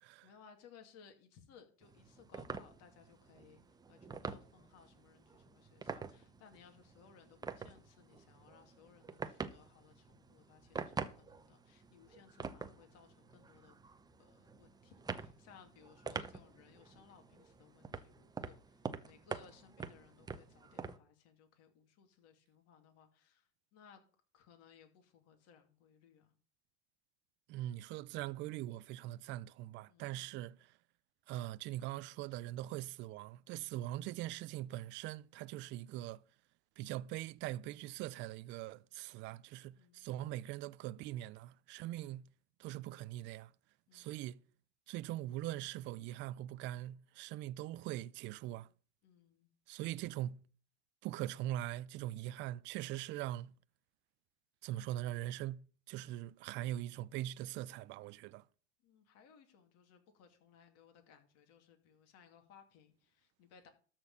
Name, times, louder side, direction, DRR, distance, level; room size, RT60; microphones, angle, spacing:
voice 1, 0.2-13.8 14.2-24.0 24.3-26.3 29.9-30.4 33.8-34.0 39.7-40.1 41.8-42.2 43.9-44.2 49.0-49.5 58.8-63.7, left 7 dB, 45° left, 2.7 m, -63 dB
sound 1, 1.8-21.0, right 5 dB, 10° right, 0.8 m, -47 dB
voice 2, 27.5-30.7 31.3-36.2 36.8-42.2 42.6-43.5 43.9-44.4 44.9-48.7 49.7-50.4 51.0-53.5 54.6-58.4, right 14 dB, 35° right, 0.5 m, -42 dB
13.0 x 4.4 x 8.1 m
hypercardioid pair, 110°, 34 cm